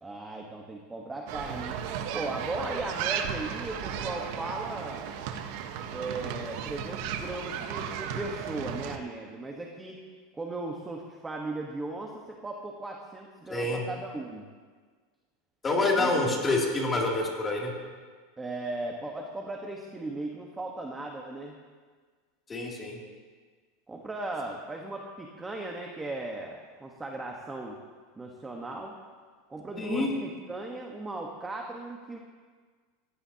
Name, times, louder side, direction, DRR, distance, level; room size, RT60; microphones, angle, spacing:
voice 1, 0.0-1.8 2.1-5.1 5.9-10.0 10.3-14.5 16.0-16.4 18.4-21.6 23.9-27.8 28.2-29.0 29.5-32.2, right 2 dB, 10° right, 0 dB, 1.3 m, -37 dB
sound 1, 1.3-9.0, right 8 dB, 60° right, 1.2 m, -35 dB
voice 2, 13.5-13.8 15.6-17.7 22.5-23.0 29.8-30.1, left 2 dB, 20° left, -2 dB, 2.8 m, -27 dB
20.5 x 15.5 x 2.9 m, 1.5 s
supercardioid pair, 145°, 0 cm